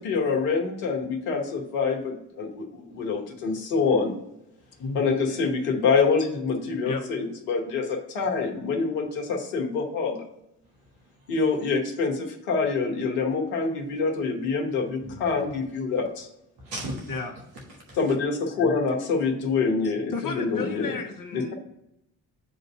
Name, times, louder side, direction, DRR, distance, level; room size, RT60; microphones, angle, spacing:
voice 1, 0.0-4.2 4.9-10.2 11.3-16.3 18.0-21.0 21.3-21.4, left 4 dB, 80° left, 2 dB, 1.1 m, -26 dB
voice 2, 10.6-11.4 15.0-15.5 16.6-17.2 17.7-18.0, right 1 dB, 85° right, -1 dB, 1.3 m, -39 dB
voice 3, 19.8-21.5, left 4 dB, 40° left, 3 dB, 1.1 m, -33 dB
7.6 x 2.6 x 5.2 m, 0.81 s
hypercardioid pair, 40°, 48 cm